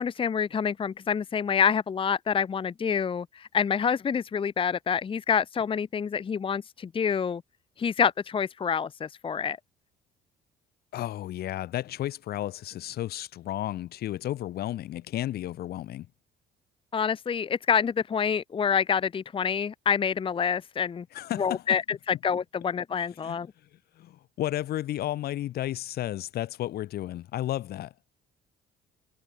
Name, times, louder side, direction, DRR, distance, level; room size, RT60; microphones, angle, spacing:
voice 1, 0.0-7.4 7.8-9.6 16.9-21.0 21.4-23.5, left 7 dB, 30° left, 1.1 m, -27 dB
voice 2, 10.9-16.1 21.1-21.6 23.2-23.4 24.0-27.9, left 13 dB, 70° left, 3.6 m, -33 dB
cardioid pair, 110°, 17 cm